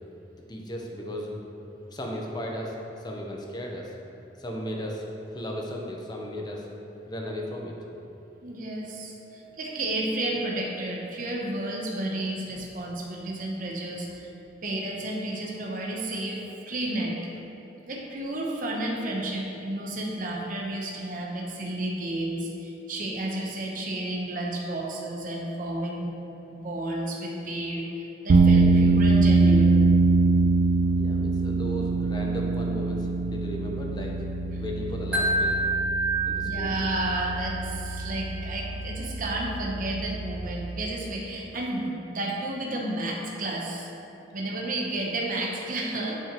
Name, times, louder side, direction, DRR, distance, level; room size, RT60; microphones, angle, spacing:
voice 1, 0.3-1.4 1.9-3.9 4.4-6.7 7.1-7.8 30.8-34.2 34.5-35.6 36.3-36.8, equal, 25° left, -1 dB, 0.8 m, -35 dB
voice 2, 8.4-14.3 14.6-16.4 16.7-17.1 17.9-26.1 26.5-29.8 36.4-43.9 44.3-46.1, right 1 dB, 50° right, -1 dB, 0.9 m, -32 dB
sound 1, 28.3-40.8, right 3 dB, 80° right, 0.4 m, -23 dB
Wind chime, 35.1-38.2, right 2 dB, 10° right, 0.8 m, -28 dB
10.5 x 5.4 x 3.0 m, 2.9 s
head